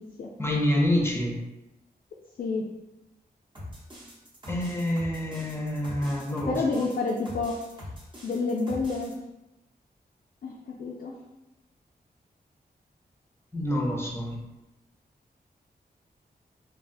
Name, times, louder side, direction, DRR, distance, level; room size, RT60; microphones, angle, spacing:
voice 1, 0.4-1.4 4.5-6.8 13.5-14.4, left 1 dB, 15° left, -1 dB, 0.5 m, -27 dB
sound 1, 3.5-9.1, left 1 dB, 30° right, 0.7 m, -42 dB
voice 2, 6.5-7.6 8.2-9.1 10.4-11.1, left 3 dB, 65° left, -3 dB, 0.4 m, -29 dB
3.3 x 2.2 x 2.6 m, 0.98 s
wide cardioid pair, 105°, 17 cm